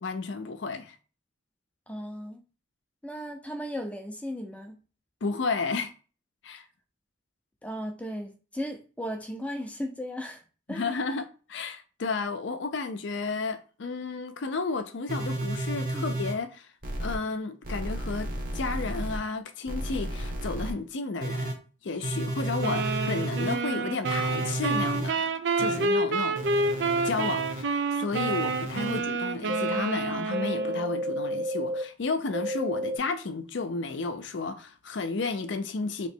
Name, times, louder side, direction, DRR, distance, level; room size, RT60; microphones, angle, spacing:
voice 1, 0.0-0.9 5.2-5.9 6.4-6.6 10.7-16.7 17.0-18.3 18.5-21.6 21.8-25.3 25.6-26.5 27.0-36.1, left 4 dB, 70° left, 0.5 m, -32 dB
voice 2, 1.9-2.4 3.0-4.8 7.6-10.4 10.7-11.0 15.9-16.0, equal, 5° left, 0.5 m, -36 dB
sound 1, 15.1-16.3 16.8-17.2 17.6-19.2 19.7-20.7 21.2-21.5 22.0-23.5 24.0-25.1 25.6-25.9 26.4-27.6 28.1-29.0 29.5-29.8 30.3-31.8 32.3-33.0, right 1 dB, 45° right, 1.0 m, -32 dB
sound 2, 22.6-31.0, right 3 dB, 65° right, 0.4 m, -29 dB
3.0 x 3.0 x 4.4 m
head